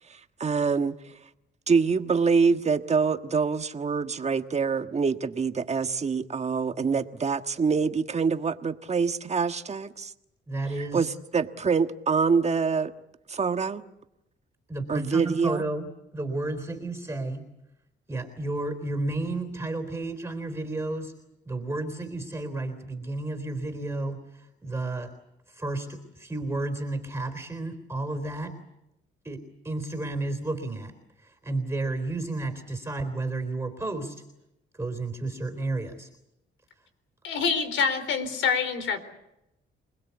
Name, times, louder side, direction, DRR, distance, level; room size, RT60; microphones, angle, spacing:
voice 1, 0.1-1.0 1.7-10.1 10.9-12.9 13.3-13.8 14.9-15.6, right 5 dB, 35° right, 8 dB, 1.5 m, -25 dB
voice 2, 10.5-11.1 14.7-17.5 18.1-21.1 21.5-25.1 25.5-28.5 29.2-30.9 31.2-34.2 34.8-36.1, right 2 dB, 15° right, 6 dB, 3.7 m, -32 dB
voice 3, 37.2-39.0, left 5 dB, 80° left, 10 dB, 4.1 m, -26 dB
27.5 x 20.0 x 8.3 m, 0.87 s
cardioid pair, 90°, 20 cm